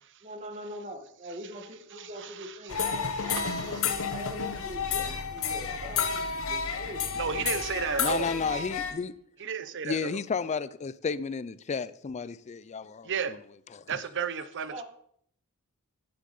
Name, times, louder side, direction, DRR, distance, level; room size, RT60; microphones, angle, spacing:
voice 1, 0.2-3.1 3.4-7.4 8.0-8.5 14.7-14.8, equal, 30° right, 1.6 m, -43 dB
voice 2, 2.0-2.6 3.2-3.9 7.2-8.7 9.4-10.2 13.0-13.4 13.9-14.8, right 6 dB, 55° right, 0.7 m, -33 dB
sound 1, 2.7-8.9, left 6 dB, 65° left, 1.1 m, -31 dB
voice 3, 8.0-9.1 9.8-13.3 13.7-14.0, left 5 dB, 30° left, 0.4 m, -32 dB
9.6 x 7.5 x 5.3 m
head